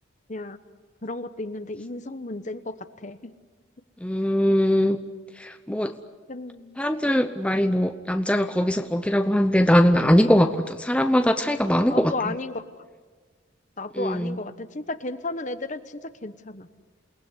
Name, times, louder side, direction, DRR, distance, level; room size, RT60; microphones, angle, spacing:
voice 1, 1.0-3.3 5.7-5.8 6.3-6.8 11.9-12.6 13.8-16.7, left 2 dB, 40° left, 11 dB, 1.1 m, -34 dB
voice 2, 4.0-5.0 5.4-5.9 6.8-12.3 14.0-14.4, equal, 5° left, 7 dB, 0.8 m, -21 dB
28.5 x 19.0 x 9.9 m, 1.4 s
head